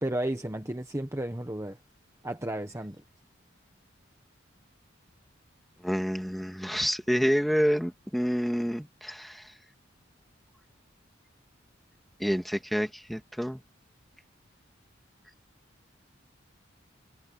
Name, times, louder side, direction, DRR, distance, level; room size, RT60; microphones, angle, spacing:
voice 1, 0.0-1.8 2.2-3.0, right 1 dB, 15° right, 1.2 m, -33 dB
voice 2, 5.8-9.4 12.2-13.6, equal, ahead, 2.3 m, -28 dB
head